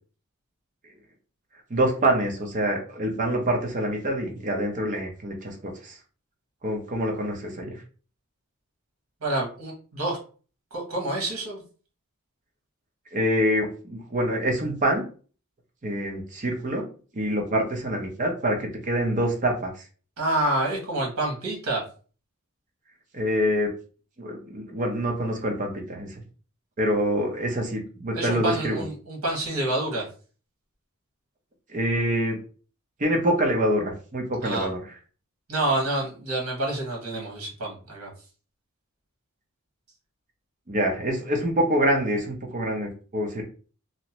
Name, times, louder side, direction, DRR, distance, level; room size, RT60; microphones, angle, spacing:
voice 1, 1.7-6.0 6.6-7.8 13.1-15.0 15.8-16.8 17.1-19.7 23.1-23.7 24.2-26.2 26.8-28.8 31.7-32.4 33.0-34.8 40.7-43.4, equal, 35° right, 1 dB, 0.7 m, -26 dB
voice 2, 9.2-10.2 10.7-11.6 20.2-21.8 28.1-30.0 34.4-34.7 35.5-38.1, right 2 dB, 75° right, 0 dB, 1.2 m, -28 dB
2.8 x 2.0 x 2.8 m, 0.39 s
head